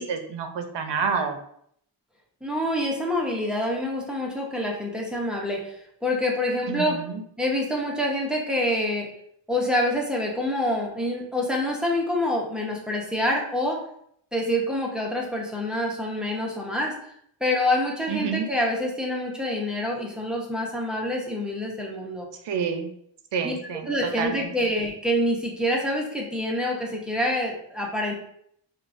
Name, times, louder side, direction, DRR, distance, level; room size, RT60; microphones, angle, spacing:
voice 1, 0.0-1.4 6.7-7.2 18.1-18.5 22.4-22.9 23.3-24.5, right 5 dB, 70° right, 6 dB, 0.6 m, -28 dB
voice 2, 2.4-7.0 7.4-9.1 9.5-13.8 14.3-16.9 17.4-22.3 23.4-23.5 23.9-28.1, left 1 dB, ahead, -2 dB, 0.7 m, -26 dB
4.5 x 2.3 x 2.5 m, 0.69 s
wide cardioid pair, 100°, 44 cm